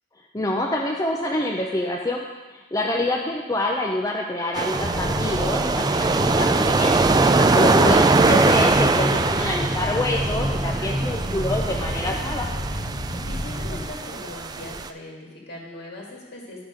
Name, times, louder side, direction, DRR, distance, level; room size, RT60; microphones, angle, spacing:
voice 1, 0.3-2.2 2.5-12.5, left 1 dB, 20° left, -1 dB, 0.7 m, -26 dB
sound 1, 4.6-14.9, right 3 dB, 20° right, 0.3 m, -22 dB
sound 2, 4.7-13.9, equal, 35° left, 1.0 m, -29 dB
voice 2, 13.2-16.6, left 2 dB, 60° left, -2 dB, 2.1 m, -40 dB
11.5 x 5.9 x 5.1 m, 1.2 s
head